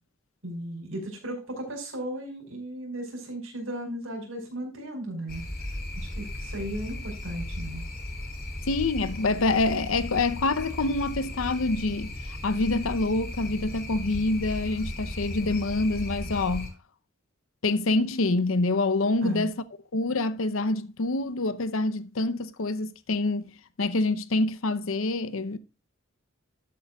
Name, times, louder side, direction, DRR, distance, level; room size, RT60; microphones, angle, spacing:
voice 1, 0.4-5.4 5.9-7.8 19.2-19.5, right 1 dB, 80° right, 5.0 m, -36 dB
sound 1, 5.3-16.7, left 1 dB, 50° left, 4.2 m, -36 dB
voice 2, 8.7-16.7 17.6-19.5 19.9-23.4 23.8-25.6, left 2 dB, 80° left, 0.7 m, -26 dB
12.5 x 8.5 x 2.3 m
head